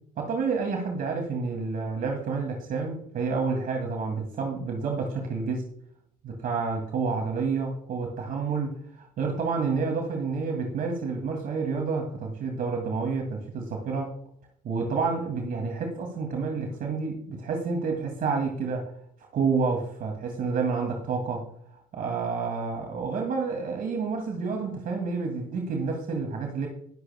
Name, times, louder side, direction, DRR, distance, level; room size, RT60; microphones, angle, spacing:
voice 1, 0.2-5.7 6.2-14.1 14.6-18.8 19.3-21.5 21.9-26.7, right 4 dB, 55° right, 2 dB, 2.4 m, -29 dB
20.0 x 7.9 x 2.2 m, 0.68 s
supercardioid pair, 70°, 18 cm